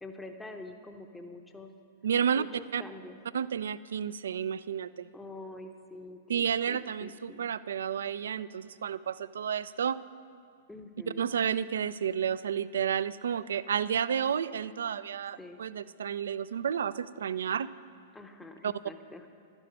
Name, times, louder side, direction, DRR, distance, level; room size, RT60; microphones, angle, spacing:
voice 1, 0.0-1.7 2.3-2.5 2.8-3.2 5.1-7.4 10.7-11.3 15.4-15.6 18.1-19.3, left 2 dB, 10° left, 5 dB, 0.7 m, -46 dB
voice 2, 2.0-2.4 2.7-2.8 3.3-5.1 6.3-10.0 11.2-17.7 18.6-18.7, right 8 dB, 70° right, 17 dB, 0.3 m, -31 dB
11.5 x 10.5 x 5.4 m, 2.3 s
figure-of-eight pair, 100°, 0 cm